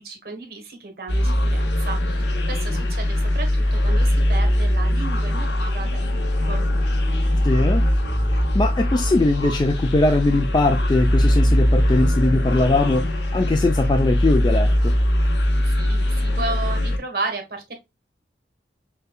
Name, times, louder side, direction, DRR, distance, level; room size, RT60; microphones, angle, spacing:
voice 1, 0.0-6.2 6.5-6.6 15.6-17.7, right 3 dB, 55° right, 1.1 m, -33 dB
sound 1, 1.1-17.0, left 1 dB, 85° left, 0.8 m, -21 dB
voice 2, 7.4-7.8 8.5-14.9, left 2 dB, 25° left, 0.3 m, -21 dB
6.5 x 2.3 x 2.3 m
head